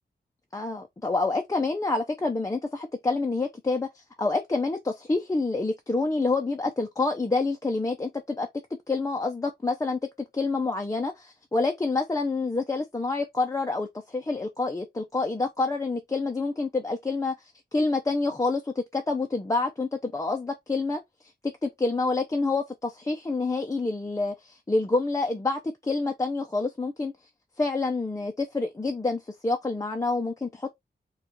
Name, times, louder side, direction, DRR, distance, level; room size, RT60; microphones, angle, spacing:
voice 1, 0.5-8.5 8.9-10.0 10.3-21.0 21.6-27.1 27.6-30.7, left 3 dB, 20° left, 0.5 m, -27 dB
4.3 x 2.4 x 3.7 m
wide cardioid pair, 155°, 18 cm